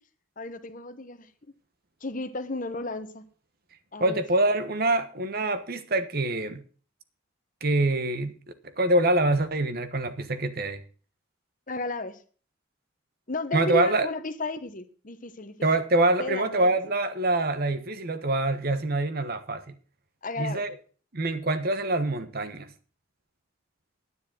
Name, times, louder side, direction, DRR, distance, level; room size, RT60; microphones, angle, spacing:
voice 1, 0.4-1.3 2.0-3.2 3.9-4.2 11.7-12.2 13.3-15.5 16.2-16.7 20.2-20.6, left 2 dB, 40° left, 1.1 m, -33 dB
voice 2, 4.0-6.6 7.6-8.4 8.8-10.8 13.5-14.1 15.6-19.7 20.4-20.7 21.1-22.7, right 2 dB, 50° right, 1.2 m, -25 dB
10.0 x 9.6 x 6.1 m
head